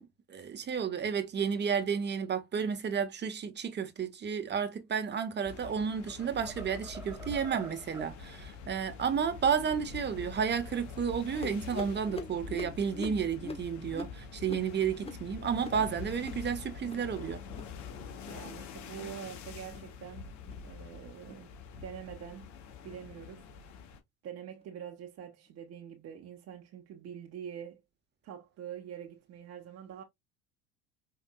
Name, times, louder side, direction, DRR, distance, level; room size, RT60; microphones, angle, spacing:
voice 1, 0.0-17.4, right 7 dB, 30° right, 1.4 m, -32 dB
sound 1, 5.3-5.7 6.1-8.2, right 4 dB, 10° right, 0.9 m, -47 dB
sound 2, 5.4-24.0, left 6 dB, 55° left, 1.8 m, -45 dB
sound 3, 11.4-16.5 16.7-17.1 17.4-17.8 18.1-18.5 18.8-19.2 19.6-19.9 20.4-20.7 21.2-21.4 22.0-22.2 22.8-23.0 23.7-23.8 24.6-24.7, left 2 dB, 15° left, 1.3 m, -45 dB
voice 2, 18.3-20.3 20.6-21.5 21.8-22.5 22.8-23.5 24.2-27.8 28.2-30.0, right 9 dB, 45° right, 1.3 m, -45 dB
5.4 x 3.5 x 2.3 m
hypercardioid pair, 85°, 34 cm